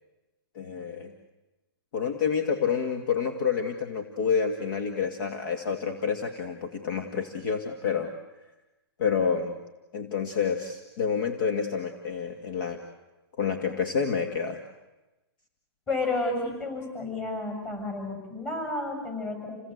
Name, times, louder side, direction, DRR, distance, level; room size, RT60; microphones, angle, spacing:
voice 1, 0.5-1.1 1.9-8.1 9.0-9.6 9.9-12.8 13.4-14.6, left 6 dB, 50° left, 5 dB, 2.3 m, -28 dB
voice 2, 15.9-19.6, left 2 dB, 20° left, 4 dB, 7.3 m, -31 dB
28.5 x 18.5 x 8.1 m, 1.0 s
hypercardioid pair, 150°, 13 cm